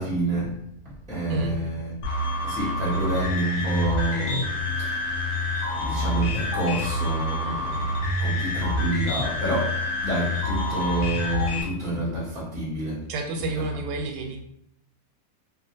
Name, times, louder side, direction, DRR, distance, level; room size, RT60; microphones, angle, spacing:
voice 1, 0.0-1.9 2.4-5.4 5.7-13.1 13.4-13.6, right 1 dB, 5° left, 0.5 m, -29 dB
sound 1, 2.0-11.6, left 1 dB, 65° left, 0.8 m, -27 dB
voice 2, 13.1-14.4, right 3 dB, 90° right, 1.2 m, -29 dB
2.7 x 2.5 x 2.6 m
omnidirectional pair, 1.8 m